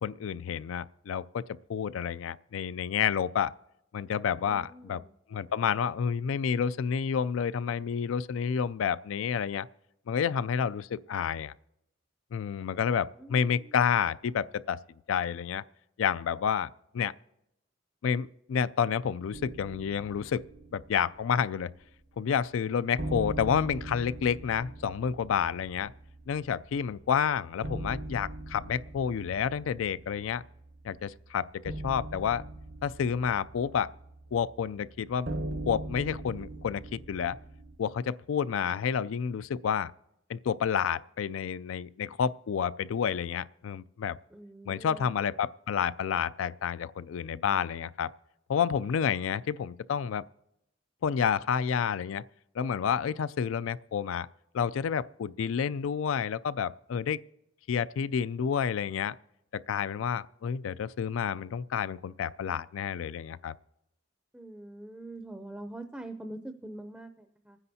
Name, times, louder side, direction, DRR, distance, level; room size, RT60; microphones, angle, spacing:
voice 1, 0.0-1.4 1.7-3.5 3.9-5.0 5.3-9.7 10.1-11.5 12.3-14.8 15.1-15.6 16.0-16.7 16.9-17.1 18.0-20.4 20.7-21.7 22.2-25.9 26.3-30.4 30.8-32.5 32.8-33.9 34.3-35.3 35.7-37.4 37.8-39.9 40.3-44.2 44.7-48.1 48.5-50.2 51.0-52.2 52.6-54.3 54.5-57.2 57.7-59.1 59.7-63.5, left 7 dB, 85° left, 0.3 m, -29 dB
voice 2, 4.4-5.1 13.2-13.8 44.3-45.2 64.3-67.6, right 1 dB, 5° right, 0.5 m, -44 dB
sound 1, 19.3-22.2 22.4-22.5 23.0-37.7, right 1 dB, 60° right, 0.9 m, -41 dB
27.0 x 9.7 x 2.8 m
head